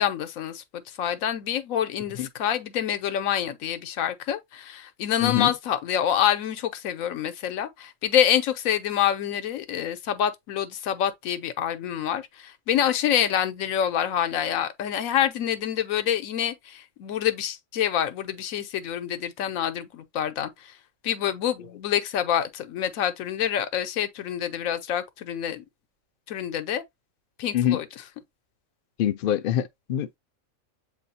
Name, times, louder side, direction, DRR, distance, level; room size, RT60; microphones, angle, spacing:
voice 1, 0.0-20.7 21.0-25.6 26.3-26.8 27.4-27.8, left 10 dB, 90° left, 1.1 m, -27 dB
voice 2, 5.2-5.5 27.5-27.8 29.0-30.2, left 11 dB, 65° left, 0.5 m, -25 dB
7.6 x 2.7 x 2.6 m
omnidirectional pair, 1.4 m